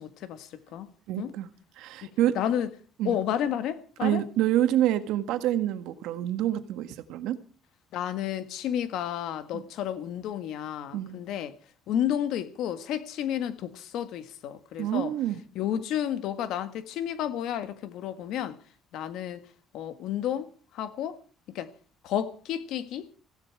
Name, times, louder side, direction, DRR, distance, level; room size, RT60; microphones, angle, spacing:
voice 1, 0.0-0.9 1.2-1.3 2.3-2.7 3.0-4.2 7.9-11.5 11.9-15.1 15.5-18.6 18.9-19.4 19.7-21.2 21.5-21.7 22.0-23.1, left 10 dB, 65° left, 1.6 m, -31 dB
voice 2, 1.1-1.5 1.8-2.4 3.0-3.2 4.0-7.4 9.5-9.6 10.9-11.2 14.8-15.4, right 12 dB, 90° right, 1.6 m, -27 dB
17.5 x 16.0 x 4.7 m
cardioid pair, 170°, 0 cm